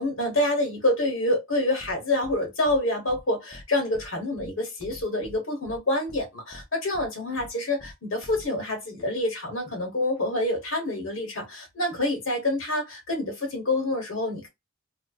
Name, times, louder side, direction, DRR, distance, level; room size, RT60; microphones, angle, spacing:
voice 1, 0.0-14.5, left 1 dB, 75° left, 1.0 m, -27 dB
sound 1, 1.8-1.9 2.2-2.4 2.6-2.8 3.1-3.2 3.5-3.6 3.9-4.1 4.4-4.5 4.8-5.4 5.6-5.8 6.1-6.2 6.5-6.6 6.9-7.1 7.4-7.5 7.8-7.9 8.2-8.5, left 1 dB, 15° left, 0.3 m, -45 dB
2.5 x 2.1 x 2.3 m
head